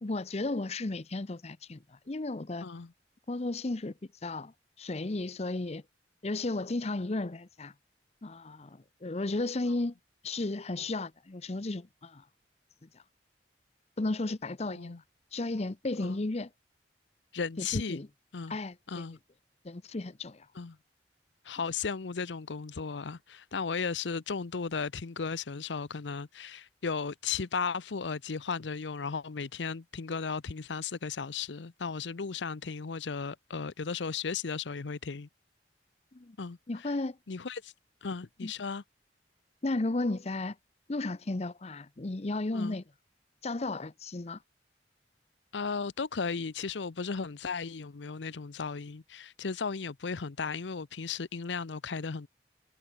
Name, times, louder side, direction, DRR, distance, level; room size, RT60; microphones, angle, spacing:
voice 1, 0.0-2.7 3.3-3.9 4.2-4.5 4.8-5.8 6.2-7.7 8.2-9.9 10.2-12.2 14.0-15.0 15.3-16.5 17.6-18.1 18.5-19.1 19.6-20.5 36.1-36.4 36.7-37.2 38.4-38.5 39.6-40.6 40.9-42.8 43.4-44.4, left 2 dB, 35° left, 0.7 m, -34 dB
voice 2, 2.6-2.9 14.7-15.0 16.0-16.2 17.3-18.0 18.3-18.5 18.9-19.2 20.5-20.8 21.4-35.3 36.4-36.9 37.3-37.7 38.0-38.8 42.5-42.8 45.5-52.3, left 5 dB, 85° left, 0.7 m, -35 dB
head